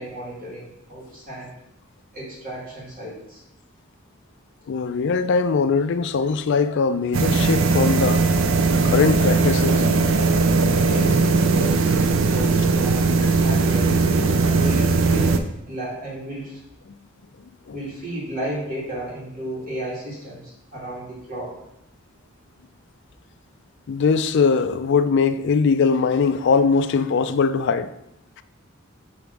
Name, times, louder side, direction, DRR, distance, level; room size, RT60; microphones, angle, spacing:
voice 1, 0.0-1.5 2.1-3.4 10.7-14.0 14.6-15.4 15.6-16.6 17.7-21.5, right 1 dB, 45° right, 2.1 m, -33 dB
voice 2, 4.7-8.3 8.7-9.8 17.7-17.8 23.9-27.9, left 5 dB, 60° left, 0.4 m, -21 dB
sound 1, 7.1-15.4, right 4 dB, 65° right, 0.5 m, -19 dB
6.4 x 3.4 x 5.0 m
head